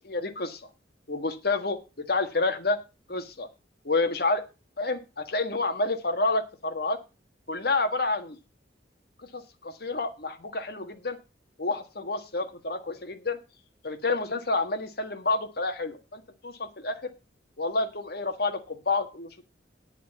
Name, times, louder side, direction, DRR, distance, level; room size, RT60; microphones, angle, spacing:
voice 1, 0.1-0.6 1.1-2.8 3.1-3.5 3.8-4.4 4.8-7.0 7.5-8.4 9.3-11.2 11.6-13.4 13.8-17.0 17.6-19.4, left 3 dB, 60° left, 8 dB, 1.6 m, -29 dB
9.9 x 8.3 x 5.3 m, 0.29 s
head